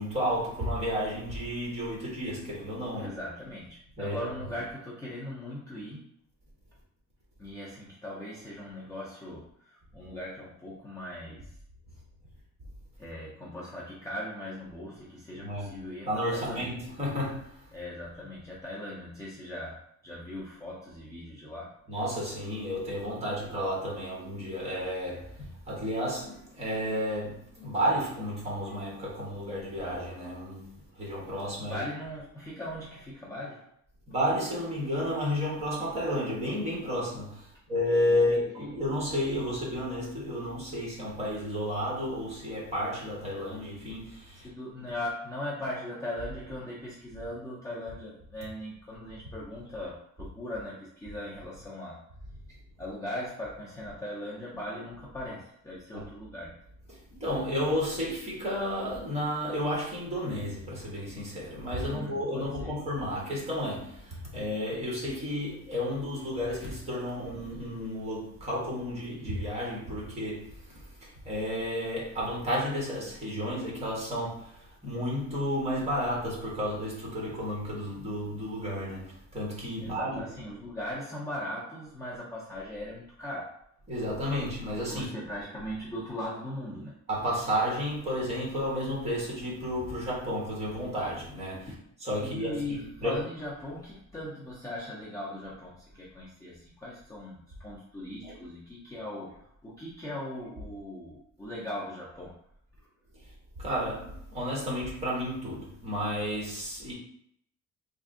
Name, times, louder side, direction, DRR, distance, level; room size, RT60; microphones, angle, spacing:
voice 1, 0.0-3.2 4.0-4.3 15.3-15.8 16.0-17.6 21.9-31.8 34.1-44.5 44.8-44.9 55.9-56.1 56.9-80.2 83.9-85.1 87.1-91.7 92.0-93.2 98.2-98.4 103.6-106.9, equal, 20° right, 1.2 m, -32 dB
voice 2, 2.9-6.0 7.4-11.5 13.0-16.7 17.7-21.7 31.6-33.7 38.3-38.7 44.4-52.0 52.8-56.6 61.8-62.8 79.8-83.6 84.9-86.9 91.7-91.8 92.2-102.4, left 1 dB, 10° left, 0.5 m, -39 dB
3.4 x 2.5 x 3.7 m
cardioid pair, 180°, 30 cm